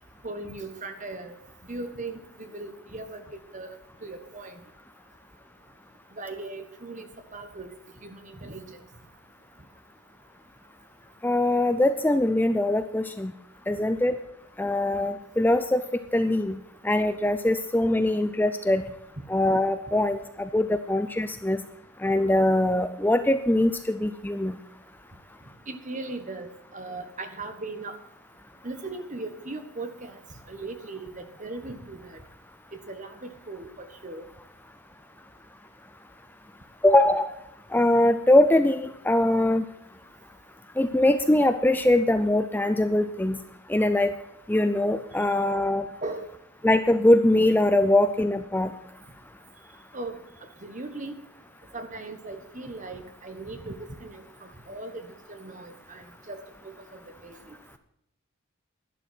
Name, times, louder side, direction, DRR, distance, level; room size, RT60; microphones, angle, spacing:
voice 1, 0.2-1.3 1.6-4.6 6.2-7.1 7.3-7.7 8.0-8.8 25.7-27.9 28.6-30.2 30.5-32.2 32.9-34.3 46.0-46.3 49.9-50.2 50.6-51.1 51.7-57.6, right 2 dB, 35° right, 7 dB, 1.5 m, -38 dB
voice 2, 11.2-13.3 13.7-14.2 14.6-15.8 16.1-16.6 16.8-18.8 19.3-21.6 22.0-24.6 36.8-37.3 37.7-39.6 40.8-43.4 43.7-44.1 44.5-45.9 46.6-48.7, left 1 dB, 10° left, 9 dB, 0.5 m, -22 dB
11.5 x 11.5 x 6.0 m, 0.77 s
head